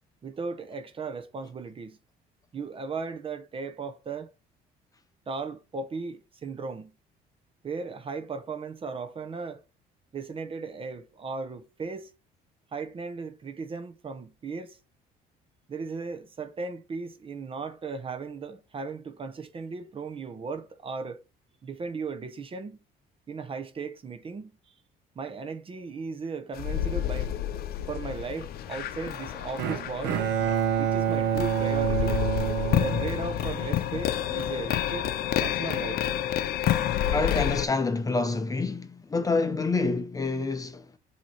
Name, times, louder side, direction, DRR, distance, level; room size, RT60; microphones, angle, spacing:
voice 1, 0.2-2.0 2.5-4.3 5.3-6.9 7.6-9.6 10.1-12.1 12.7-14.8 15.7-21.2 21.6-22.8 23.3-24.5 25.2-27.3 27.9-30.2 30.8-32.3 32.8-36.0, right 4 dB, 30° right, 0.7 m, -36 dB
sound 1, 26.5-37.7, left 11 dB, 65° left, 0.6 m, -29 dB
Bowed string instrument, 29.6-33.8, right 9 dB, 85° right, 0.8 m, -27 dB
voice 2, 37.1-40.9, left 3 dB, 20° left, 0.7 m, -27 dB
7.6 x 2.9 x 4.3 m
cardioid pair, 110°, 17 cm